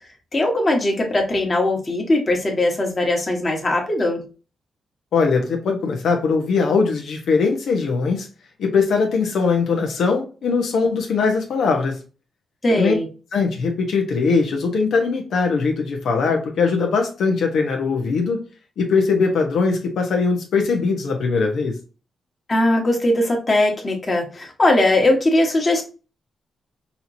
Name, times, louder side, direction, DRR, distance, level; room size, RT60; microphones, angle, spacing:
voice 1, 0.3-4.2 12.6-13.1 22.5-25.8, left 1 dB, 25° left, 0 dB, 1.4 m, -19 dB
voice 2, 5.1-8.3 8.6-12.0 12.7-12.9 13.3-18.4 18.8-21.7, left 4 dB, 75° left, 2 dB, 0.9 m, -20 dB
5.5 x 3.0 x 2.6 m, 0.34 s
wide cardioid pair, 135°, 0 cm